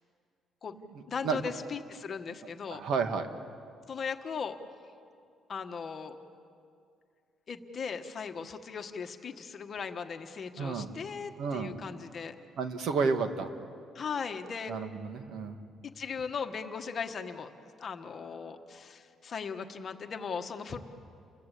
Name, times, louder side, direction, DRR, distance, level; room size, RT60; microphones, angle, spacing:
voice 1, 1.1-2.8 3.9-4.6 5.5-6.2 7.5-12.4 13.9-14.7 15.8-17.5 17.8-20.8, left 6 dB, 40° left, 6 dB, 1.4 m, -38 dB
voice 2, 2.7-3.3 10.6-10.9 11.4-11.7 12.6-13.5 14.7-15.6, right 5 dB, 65° right, 7 dB, 1.8 m, -31 dB
30.0 x 22.0 x 8.5 m, 2.4 s
cardioid pair, 140°, 0 cm